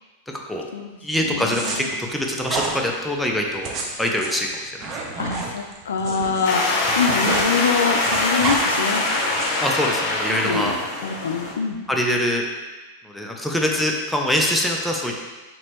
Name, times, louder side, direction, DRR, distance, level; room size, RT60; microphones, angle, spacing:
voice 1, 0.3-0.7 1.0-3.7 4.0-4.5 9.6-10.7 11.9-12.4 13.0-15.1, left 1 dB, ahead, 0 dB, 0.5 m, -24 dB
voice 2, 1.2-1.9 5.2-9.0 10.3-10.8 11.0-11.8, left 5 dB, 85° left, 4 dB, 0.4 m, -25 dB
sound 1, 1.5-1.8 2.4-2.7 3.5-6.5 6.8-7.5 7.8-8.6 9.2-9.6, right 4 dB, 40° right, 0.6 m, -30 dB
sound 2, 6.4-11.5, left 2 dB, 55° left, 0.9 m, -23 dB
4.1 x 3.1 x 2.9 m, 1.3 s
hypercardioid pair, 105°, 0 cm